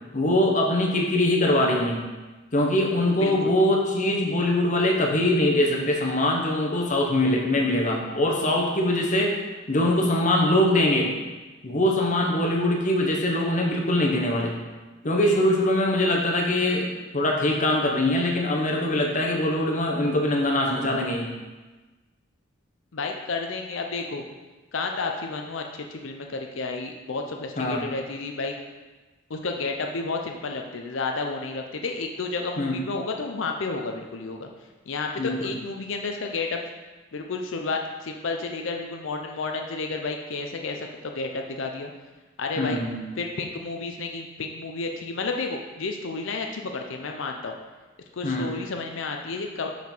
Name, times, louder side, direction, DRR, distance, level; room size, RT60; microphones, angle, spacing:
voice 1, 0.1-2.0 2.5-9.4 9.7-11.1 11.6-14.6 15.0-21.3 27.6-27.8 32.6-32.7 35.2-35.5 42.6-43.0 48.2-48.5, left 1 dB, 40° left, 0 dB, 1.0 m, -23 dB
voice 2, 3.2-3.5 22.9-24.2 24.7-25.6 25.9-28.5 29.3-34.5 34.9-36.6 37.1-41.9 42.4-42.8 43.2-47.6 48.1-49.7, left 3 dB, 70° left, 3 dB, 0.6 m, -31 dB
5.8 x 5.8 x 4.5 m, 1.2 s
head